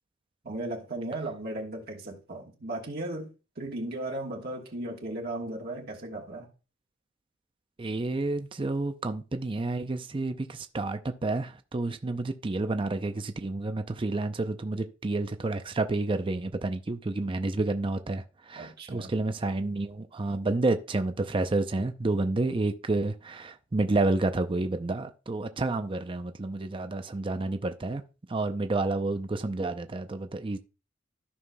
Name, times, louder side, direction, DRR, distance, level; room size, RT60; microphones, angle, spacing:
voice 1, 0.4-6.5 18.5-19.1, right 1 dB, 50° right, 1.3 m, -36 dB
voice 2, 7.8-28.0 28.3-30.6, right 2 dB, 25° right, 0.5 m, -30 dB
14.0 x 5.6 x 2.2 m
head